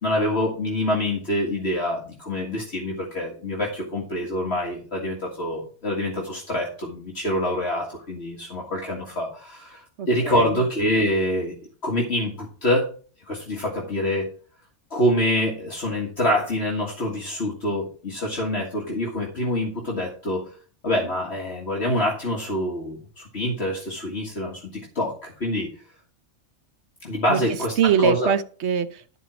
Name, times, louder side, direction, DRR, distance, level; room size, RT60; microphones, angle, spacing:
voice 1, 0.0-11.5 11.8-12.9 13.3-14.3 14.9-20.4 20.8-25.7 27.0-28.3, left 1 dB, 60° left, -2 dB, 2.0 m, -26 dB
voice 2, 10.0-10.6 27.3-27.4 27.8-29.2, right 7 dB, 65° right, 12 dB, 1.0 m, -23 dB
13.0 x 4.5 x 6.1 m, 0.41 s
omnidirectional pair, 1.3 m